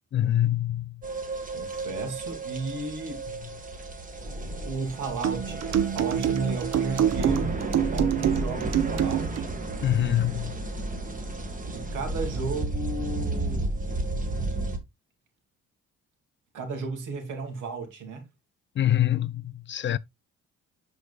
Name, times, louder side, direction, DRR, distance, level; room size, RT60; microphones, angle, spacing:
voice 1, 0.1-1.0 9.8-10.6 18.8-20.0, left 12 dB, 40° left, 0.4 m, -25 dB
sound 1, 1.0-14.8, right 2 dB, 25° right, 1.7 m, -33 dB
voice 2, 1.5-3.2 4.6-7.6 7.9-9.6 11.7-13.8 16.5-18.3, right 3 dB, 90° right, 2.6 m, -34 dB
sound 2, 5.2-9.5, right 9 dB, 60° right, 0.9 m, -26 dB
11.0 x 4.6 x 2.4 m
cardioid pair, 90°, 30 cm